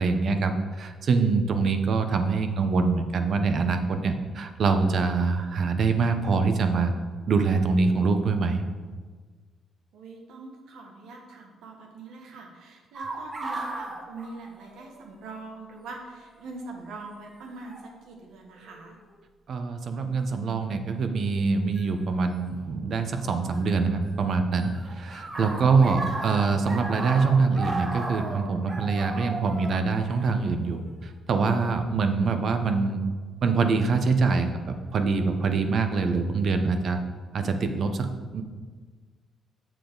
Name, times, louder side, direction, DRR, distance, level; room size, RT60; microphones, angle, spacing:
voice 1, 0.0-6.9 7.3-8.6 19.5-33.0 33.4-37.0 37.3-38.4, right 4 dB, 55° right, 7 dB, 0.8 m, -24 dB
voice 2, 9.9-19.0, right 3 dB, 85° right, 1 dB, 1.5 m, -43 dB
sound 1, 12.9-15.0 15.3-15.4 16.4-16.7 17.7-17.9 18.6-19.1 21.8-21.9 23.2-24.1 24.3-30.9, right 2 dB, 40° right, 1.3 m, -35 dB
7.4 x 6.9 x 3.9 m, 1.4 s
cardioid pair, 90°, 0 cm